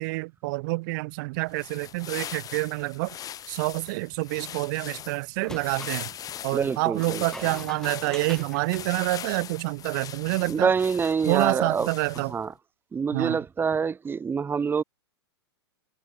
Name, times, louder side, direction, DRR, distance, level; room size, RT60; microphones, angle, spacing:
voice 1, 0.0-3.2 3.5-6.1 6.4-10.7 11.3-12.3 13.1-13.4, right 25 dB, 45° right, 4.7 m, -27 dB
sound 1, 1.4-12.5, left 10 dB, 25° left, 4.6 m, -40 dB
sound 2, 5.4-6.0 7.0-9.7, left 1 dB, 5° left, 4.1 m, -43 dB
voice 2, 6.5-7.5 10.5-11.9 12.3-12.5 12.9-14.8, right 6 dB, 15° right, 2.1 m, -26 dB
figure-of-eight pair, 100°, 15 cm